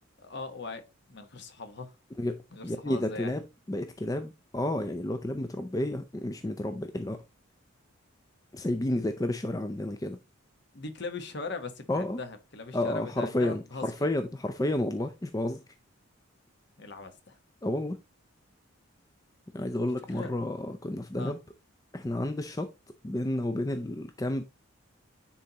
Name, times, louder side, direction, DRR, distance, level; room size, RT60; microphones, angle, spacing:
voice 1, 0.2-1.9 2.5-3.3 10.7-13.8 16.8-17.4 20.1-20.3 21.2-21.3, left 3 dB, 50° left, 1.0 m, -40 dB
voice 2, 2.2-7.2 8.5-10.2 11.9-12.2 12.7-15.6 17.6-18.0 19.5-21.4 21.9-22.7 23.0-24.4, left 1 dB, 15° left, 0.4 m, -31 dB
9.9 x 4.1 x 2.8 m
head